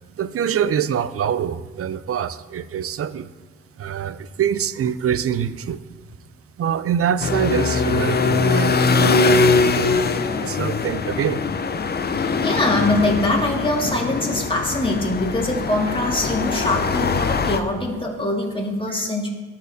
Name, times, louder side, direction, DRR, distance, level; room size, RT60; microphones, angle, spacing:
voice 1, 0.2-3.3 3.8-5.8 6.6-10.1 10.4-11.4, right 8 dB, 50° right, 14 dB, 0.5 m, -25 dB
sound 1, 7.2-17.6, left 4 dB, 35° left, 0.5 m, -21 dB
voice 2, 12.1-19.3, left 2 dB, 15° left, 0 dB, 2.0 m, -23 dB
12.5 x 4.3 x 2.7 m, 1.4 s
supercardioid pair, 50°, 30 cm